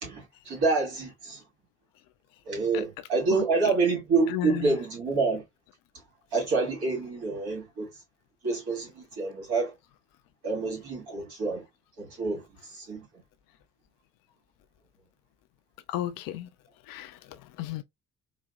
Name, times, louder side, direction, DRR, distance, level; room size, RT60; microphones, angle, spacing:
voice 1, 0.0-1.4 2.5-5.4 6.3-7.9 8.4-9.7 10.4-11.6 12.0-12.4 12.7-13.1, right 4 dB, 60° right, 2.4 m, -27 dB
voice 2, 3.3-3.7 4.3-4.8 15.9-16.5 16.9-17.2 17.6-17.8, left 13 dB, 55° left, 0.5 m, -33 dB
4.0 x 2.3 x 2.4 m
figure-of-eight pair, 45°, 43 cm